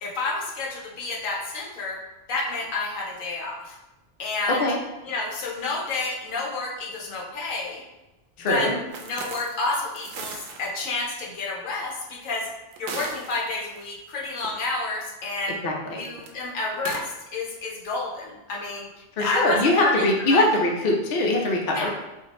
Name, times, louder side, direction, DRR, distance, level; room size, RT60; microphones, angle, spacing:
voice 1, 0.0-2.0 2.3-3.8 4.2-4.6 5.0-7.8 8.5-8.7 9.0-12.5 12.8-15.6 16.0-18.9 19.2-20.4 21.7-21.9, left 3 dB, 85° left, -2 dB, 1.2 m, -30 dB
voice 2, 8.4-8.7 15.6-16.0 19.2-21.9, left 2 dB, 55° left, 0 dB, 0.7 m, -22 dB
sound 1, 8.9-10.7 11.2-11.3 12.4-13.9 14.2-14.5 16.0-16.3 16.7-17.0, right 4 dB, 85° right, 1.0 m, -37 dB
4.4 x 2.5 x 2.9 m, 1.0 s
omnidirectional pair, 1.3 m